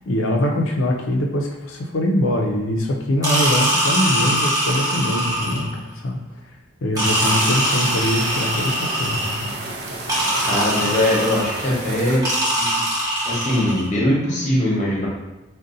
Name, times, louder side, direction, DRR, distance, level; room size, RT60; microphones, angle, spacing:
voice 1, 0.1-6.2 6.8-9.6, left 1 dB, 85° left, 2 dB, 0.5 m, -23 dB
sound 1, 3.2-5.8 6.9-9.6 10.1-11.7 12.2-13.9, right 1 dB, 20° right, 0.9 m, -22 dB
sound 2, 7.0-12.2, right 2 dB, 55° right, 0.5 m, -32 dB
voice 2, 10.4-12.2 12.7-12.8 13.2-15.1, left 1 dB, 40° left, -5 dB, 0.9 m, -21 dB
2.6 x 2.2 x 3.8 m, 1.0 s
head